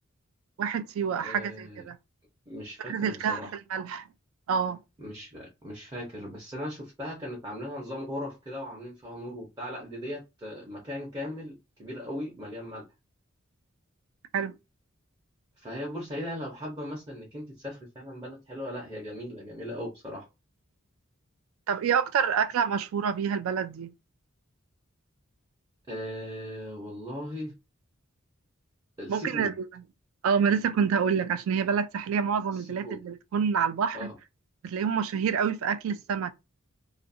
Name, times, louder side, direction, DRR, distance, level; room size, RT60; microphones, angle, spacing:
voice 1, 0.6-2.0 2.8-4.1 4.5-4.8 14.3-14.5 21.7-23.9 29.1-29.8 30.2-34.1 34.6-36.3, right 6 dB, 75° right, 0.3 m, -27 dB
voice 2, 1.2-1.8 2.5-3.5 5.0-12.8 15.6-20.3 25.9-27.5 29.0-29.5 32.5-33.0 33.9-34.1, left 1 dB, 20° right, 0.6 m, -38 dB
2.5 x 2.1 x 2.6 m
head